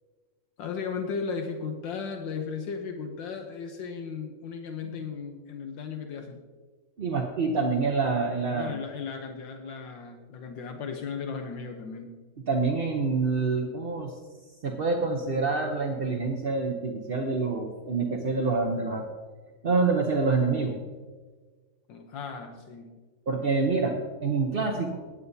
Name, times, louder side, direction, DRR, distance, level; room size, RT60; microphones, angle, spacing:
voice 1, 0.6-6.4 8.5-12.1 21.9-22.9, left 5 dB, 80° left, 4 dB, 1.6 m, -36 dB
voice 2, 7.0-8.8 12.5-14.1 14.6-19.0 19.6-20.8 23.3-23.9 24.2-25.0, right 4 dB, 50° right, 2 dB, 0.7 m, -26 dB
16.5 x 9.9 x 2.7 m, 1.4 s
omnidirectional pair, 2.0 m